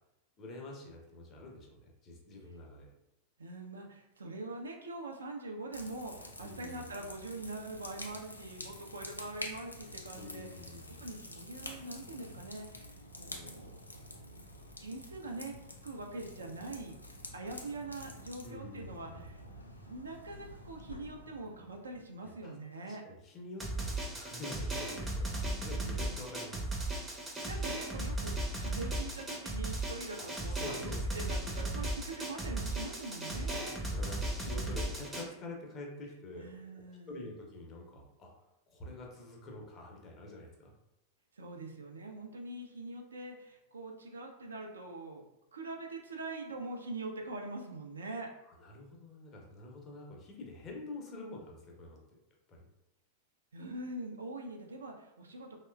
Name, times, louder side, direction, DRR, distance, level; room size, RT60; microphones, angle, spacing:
voice 1, 0.4-2.9 6.4-6.9 10.2-11.0 18.4-19.3 22.2-26.7 30.5-31.2 31.8-31.9 33.6-36.6 37.1-38.3 38.7-40.7 48.5-52.2 52.5-52.7, left 2 dB, 30° left, 0 dB, 0.6 m, -47 dB
voice 2, 3.4-10.6 11.0-13.8 14.8-17.0 17.3-19.4 19.8-23.0 25.3-26.2 27.4-30.9 31.1-33.8 36.4-37.3 41.4-45.2 45.5-48.3 53.5-55.6, right 2 dB, 70° right, 1 dB, 0.4 m, -43 dB
sound 1, 5.7-22.0, left 1 dB, 80° left, 0.4 m, -48 dB
Drum, 23.6-35.2, right 1 dB, 10° right, 0.5 m, -36 dB
2.9 x 2.1 x 2.2 m, 0.91 s
figure-of-eight pair, 90°, 0 cm